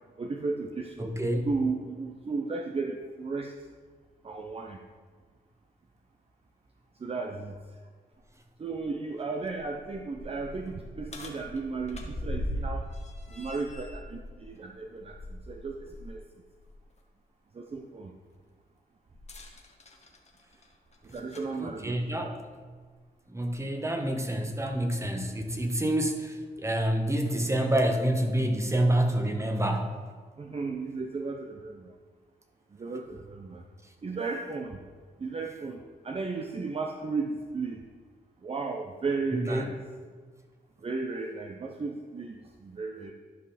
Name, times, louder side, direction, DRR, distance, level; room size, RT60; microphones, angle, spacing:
voice 1, 0.2-1.1 1.4-3.5 4.2-4.8 7.0-7.6 8.6-12.9 13.3-16.2 17.5-18.1 21.1-22.0 30.4-31.9 32.8-33.6 34.0-34.8 35.2-35.8 36.0-37.8 38.4-39.8 40.8-43.1, right 4 dB, 35° right, 2 dB, 0.7 m, -34 dB
voice 2, 1.0-1.5 21.6-22.3 23.3-29.9 39.5-39.6, right 1 dB, 15° right, 4 dB, 1.3 m, -27 dB
sound 1, 8.1-8.2 8.7-8.8 9.4-16.1 16.5-16.7 19.1-21.6 22.5-22.6 23.5-23.6, equal, 40° left, 1.3 m, -40 dB
12.0 x 5.3 x 4.3 m, 1.5 s
cardioid pair, 70°, 17 cm